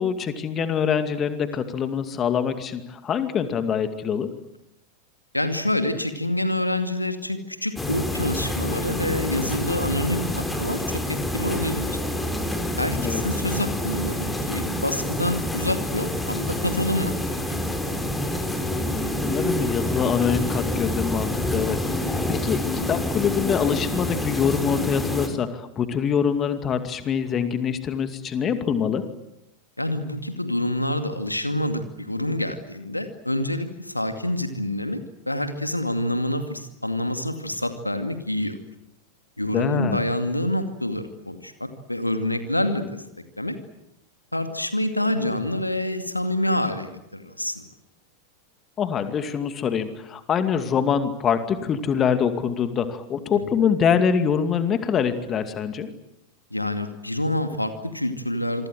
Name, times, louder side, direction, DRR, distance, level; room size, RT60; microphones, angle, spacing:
voice 1, 0.0-4.3 13.0-13.2 19.2-21.8 22.0-29.0 39.5-40.0 48.8-55.9, left 7 dB, 25° left, 9 dB, 2.4 m, -24 dB
voice 2, 5.3-12.0 12.8-17.1 29.8-35.0 35.3-38.6 39.4-43.0 43.4-43.6 44.3-47.6 56.5-58.7, left 1 dB, 85° left, 8 dB, 2.3 m, -27 dB
sound 1, 7.8-25.3, left 1 dB, 10° left, 4.3 m, -27 dB
27.0 x 24.0 x 7.8 m, 0.87 s
figure-of-eight pair, 90°, 0 cm